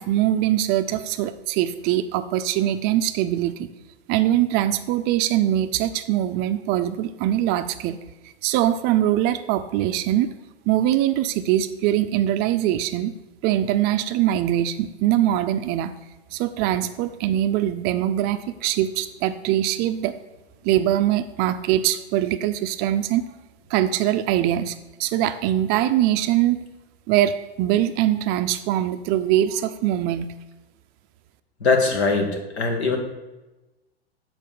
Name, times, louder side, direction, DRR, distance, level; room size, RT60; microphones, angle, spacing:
voice 1, 0.0-3.7 4.1-8.0 8.4-10.3 10.7-13.1 13.4-15.9 16.3-20.1 20.6-23.3 23.7-26.6 27.1-30.3, right 12 dB, 30° right, 10 dB, 0.4 m, -22 dB
voice 2, 31.6-33.0, left 4 dB, 80° left, 4 dB, 1.7 m, -21 dB
7.5 x 4.2 x 6.8 m, 1.1 s
hypercardioid pair, 110°, 32 cm